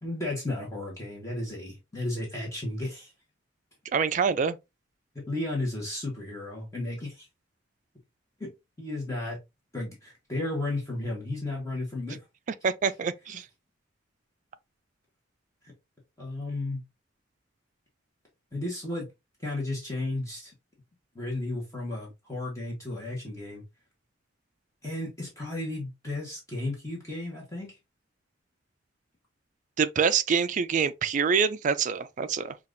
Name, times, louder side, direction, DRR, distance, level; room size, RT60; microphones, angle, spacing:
voice 1, 0.0-3.1 5.3-7.3 8.4-8.5 8.8-9.4 9.7-12.2 15.6-15.7 16.2-16.8 18.5-19.1 19.4-20.5 21.1-23.6 24.8-27.8, left 2 dB, 15° left, 1.2 m, -33 dB
voice 2, 3.9-4.6 12.6-13.4 29.8-32.6, right 6 dB, 40° right, 0.3 m, -25 dB
5.6 x 2.5 x 2.6 m
head